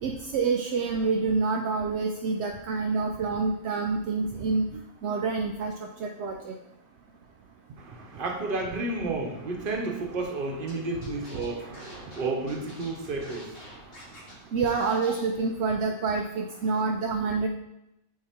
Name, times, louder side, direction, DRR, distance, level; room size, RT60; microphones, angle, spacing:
voice 1, 0.0-4.6 5.0-5.7 6.0-6.5 14.5-17.5, right 4 dB, 65° right, 2 dB, 0.7 m, -27 dB
voice 2, 7.8-14.5 14.9-15.1, right 3 dB, 45° right, 2 dB, 1.0 m, -32 dB
Scratching (performance technique), 10.7-10.8 11.0-14.3 14.7-15.2, left 1 dB, 45° left, 1.7 m, -47 dB
8.6 x 2.9 x 4.3 m, 0.87 s
omnidirectional pair, 1.5 m